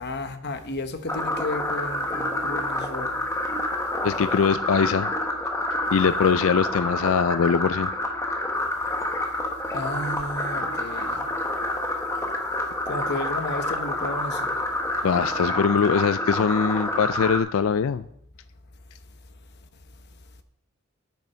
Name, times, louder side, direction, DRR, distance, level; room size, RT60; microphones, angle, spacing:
voice 1, 0.0-3.1 9.7-11.3 12.9-14.6, left 2 dB, 50° left, 1.0 m, -33 dB
sound 1, 1.1-17.4, left 1 dB, 15° left, 1.3 m, -28 dB
voice 2, 4.0-5.1 5.9-7.9 15.0-18.1, left 6 dB, 70° left, 0.4 m, -22 dB
9.2 x 8.3 x 5.6 m
head